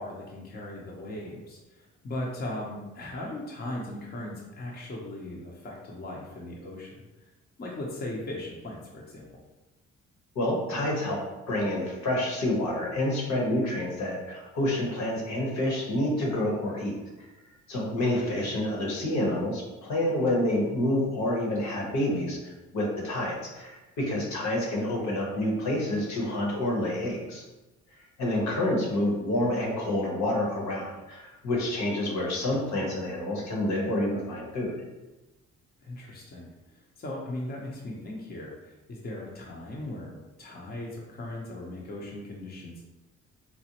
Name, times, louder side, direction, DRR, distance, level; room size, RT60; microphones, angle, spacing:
voice 1, 0.0-7.1 7.6-9.3 18.0-18.3 28.2-28.6 35.8-42.8, left 1 dB, 35° left, -3 dB, 0.7 m, -38 dB
voice 2, 10.3-11.2 11.5-17.0 17.7-27.4 28.2-34.7, left 1 dB, 65° left, -1 dB, 1.1 m, -28 dB
4.1 x 2.1 x 2.8 m, 1.1 s
cardioid pair, 90°, 30 cm